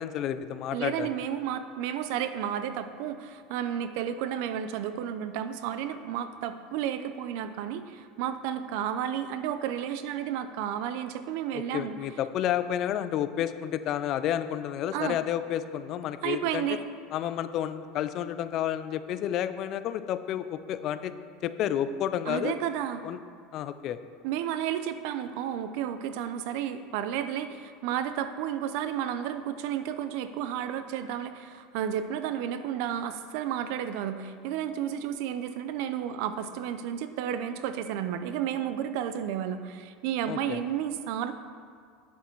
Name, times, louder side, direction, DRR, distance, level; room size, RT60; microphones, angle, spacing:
voice 1, 0.0-1.1 11.5-16.7 17.1-21.1 21.4-22.5 23.0-23.2 23.5-24.0 40.3-40.6, left 10 dB, 45° left, 12 dB, 0.4 m, -30 dB
voice 2, 0.7-11.9 14.9-15.2 16.2-16.8 22.3-23.0 24.2-41.3, right 9 dB, 65° right, 10 dB, 0.6 m, -32 dB
9.4 x 7.1 x 4.6 m, 2.2 s
supercardioid pair, 135°, 0 cm